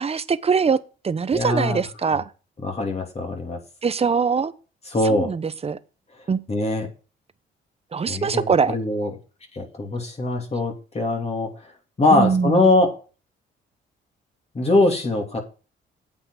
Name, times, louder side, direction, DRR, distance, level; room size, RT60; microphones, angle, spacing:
voice 1, 0.0-2.3 3.8-4.5 5.0-5.8 6.3-6.5 7.9-8.7 12.1-12.7, right 5 dB, 30° right, 0.8 m, -22 dB
voice 2, 1.3-1.8 2.6-3.6 4.9-5.3 6.5-6.9 8.1-9.1 9.5-11.5 12.0-13.0 14.5-15.4, left 2 dB, 30° left, 2.8 m, -22 dB
9.0 x 7.8 x 4.9 m
cardioid pair, 90°, 20 cm